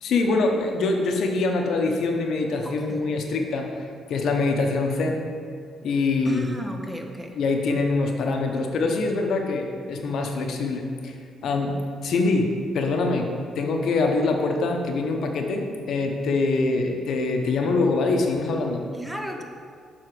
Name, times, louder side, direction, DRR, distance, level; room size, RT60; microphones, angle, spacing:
voice 1, 0.0-3.7 4.1-5.3 5.8-6.5 7.4-11.2 11.4-11.8 12.0-12.5 12.7-13.3 13.6-18.8, left 3 dB, 70° left, 2 dB, 0.8 m, -24 dB
voice 2, 2.6-3.0 6.2-7.4 18.9-19.4, equal, 5° right, 3 dB, 0.8 m, -35 dB
6.8 x 3.9 x 6.0 m, 2.2 s
cardioid pair, 90°, 0 cm